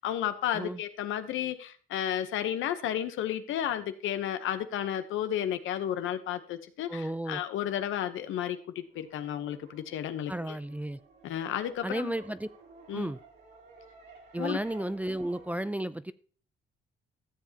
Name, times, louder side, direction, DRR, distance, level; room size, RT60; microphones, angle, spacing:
voice 1, 0.0-10.6 11.2-12.1 12.9-13.1 14.4-14.6, left 10 dB, 80° left, 10 dB, 0.9 m, -32 dB
voice 2, 6.9-7.4 10.3-11.0 11.8-12.5 12.9-13.2 14.3-16.1, right 1 dB, 10° right, 13 dB, 0.4 m, -33 dB
sound 1, 8.6-15.6, right 3 dB, 60° right, 2.9 m, -54 dB
14.0 x 7.3 x 2.8 m, 0.43 s
cardioid pair, 90°, 20 cm